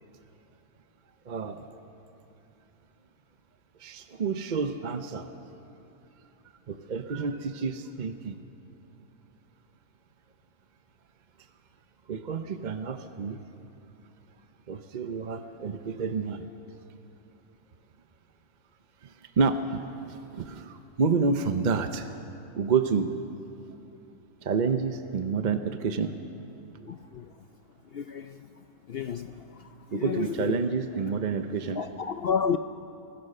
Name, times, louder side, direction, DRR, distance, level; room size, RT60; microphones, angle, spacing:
voice 1, 1.3-1.7 3.8-5.3 6.7-8.4 12.1-13.4 14.7-16.5 19.0-22.1 22.6-23.1 24.4-26.1 29.9-31.8, right 5 dB, 45° right, 8 dB, 0.6 m, -29 dB
voice 2, 26.9-27.3 27.9-28.4 28.9-30.6 31.8-32.6, left 7 dB, 70° left, 9 dB, 0.5 m, -31 dB
25.0 x 16.0 x 6.6 m, 2.8 s
omnidirectional pair, 1.6 m